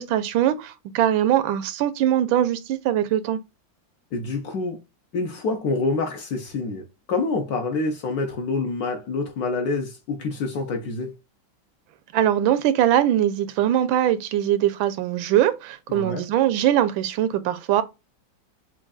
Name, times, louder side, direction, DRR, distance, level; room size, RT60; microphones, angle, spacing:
voice 1, 0.0-3.4 12.1-17.8, right 11 dB, 90° right, 1.4 m, -21 dB
voice 2, 4.1-4.8 5.1-11.1 15.9-16.2, left 3 dB, 65° left, 1.0 m, -27 dB
6.0 x 2.3 x 2.3 m
omnidirectional pair, 2.1 m